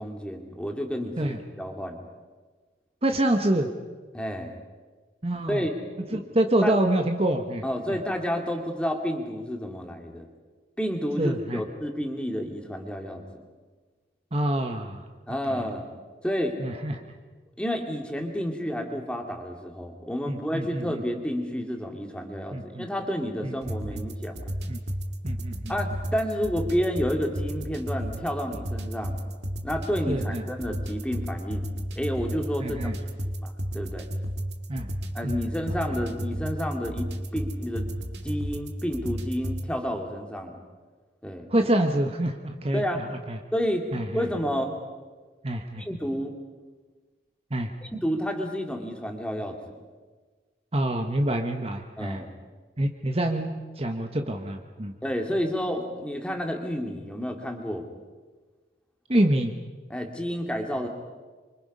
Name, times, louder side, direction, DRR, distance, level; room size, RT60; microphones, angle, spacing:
voice 1, 0.0-2.1 4.1-4.5 5.5-5.7 6.1-6.2 6.6-6.8 7.6-10.3 10.8-13.4 15.3-15.9 16.2-16.6 17.6-24.4 25.7-29.2 29.6-31.7 32.0-32.9 33.4-34.1 35.1-37.9 38.2-40.6 41.2-41.5 42.7-43.1 43.5-43.9 44.1-44.7 45.8-46.3 47.9-49.8 52.0-52.3 55.0-57.8 59.9-60.9, equal, 5° left, 3 dB, 2.5 m, -30 dB
voice 2, 3.0-3.7 5.2-5.7 6.1-7.6 7.9-8.0 11.2-11.6 14.3-15.0 15.5-15.6 16.6-17.0 20.3-21.0 22.5-22.9 23.4-24.0 24.7-24.8 25.2-25.8 30.1-30.5 32.6-33.0 34.7-34.9 35.2-35.5 41.5-42.8 43.3-43.4 43.9-44.2 45.4-45.8 47.5-47.7 50.7-52.2 52.8-54.9 59.1-59.5, right 1 dB, 35° right, 5 dB, 1.2 m, -26 dB
sound 1, 23.6-39.7, equal, 70° right, 2.1 m, -33 dB
27.0 x 24.5 x 5.6 m, 1.4 s
head